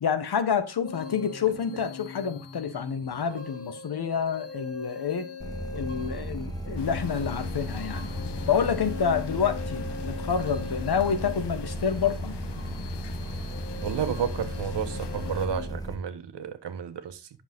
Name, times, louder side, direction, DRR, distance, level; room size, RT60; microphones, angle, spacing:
voice 1, 0.0-5.3 5.7-8.1 8.5-12.4, left 7 dB, 65° left, 1.6 m, -28 dB
sound 1, 0.8-15.7, left 5 dB, 35° left, 1.8 m, -42 dB
sound 2, 5.4-16.0, right 1 dB, 10° left, 1.9 m, -35 dB
sound 3, 6.8-15.5, left 9 dB, 85° left, 1.1 m, -42 dB
voice 2, 13.8-17.3, right 8 dB, 85° right, 1.4 m, -32 dB
10.5 x 6.9 x 3.7 m
wide cardioid pair, 105°, 40 cm